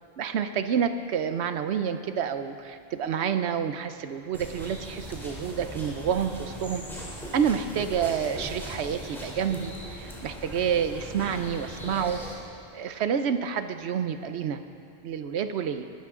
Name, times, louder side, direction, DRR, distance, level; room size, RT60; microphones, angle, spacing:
voice 1, 0.2-6.8 7.3-12.2 12.7-14.6 15.0-15.8, right 7 dB, 80° right, 9 dB, 0.9 m, -28 dB
sound 1, 4.3-12.3, equal, ahead, 3.2 m, -39 dB
21.5 x 12.0 x 3.7 m, 2.4 s
omnidirectional pair, 1.1 m